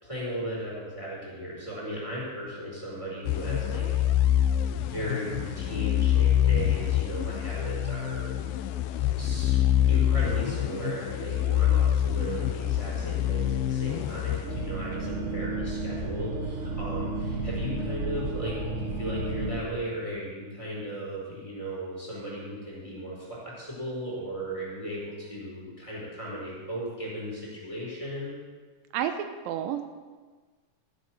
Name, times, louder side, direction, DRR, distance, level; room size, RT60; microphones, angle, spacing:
voice 1, 0.0-3.9 4.2-4.4 4.7-8.3 9.0-9.6 9.9-28.3, right 1 dB, 10° left, -6 dB, 4.6 m, -36 dB
sound 1, 3.3-15.1, left 11 dB, 85° left, 2.4 m, -26 dB
sound 2, 14.5-19.6, right 3 dB, 65° right, 2.6 m, -32 dB
voice 2, 28.9-29.8, right 10 dB, 85° right, 8 dB, 2.4 m, -30 dB
14.5 x 7.8 x 6.4 m, 1.4 s
omnidirectional pair, 4.1 m